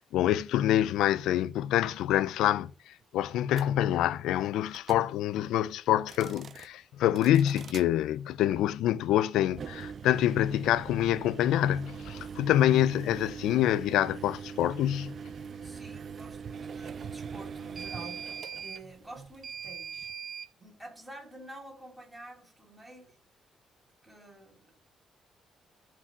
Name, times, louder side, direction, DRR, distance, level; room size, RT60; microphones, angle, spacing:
voice 1, 0.1-15.1, left 12 dB, 85° left, 0.6 m, -26 dB
sound 1, 3.5-3.7 4.7-5.1 6.0-6.7 7.1-7.9 9.5-20.5, right 6 dB, 50° right, 0.6 m, -41 dB
voice 2, 12.5-12.9 15.6-18.3 18.6-20.1 20.6-23.2 24.0-24.8, right 1 dB, 10° right, 6.9 m, -49 dB
13.5 x 4.7 x 7.4 m
cardioid pair, 90°, 0 cm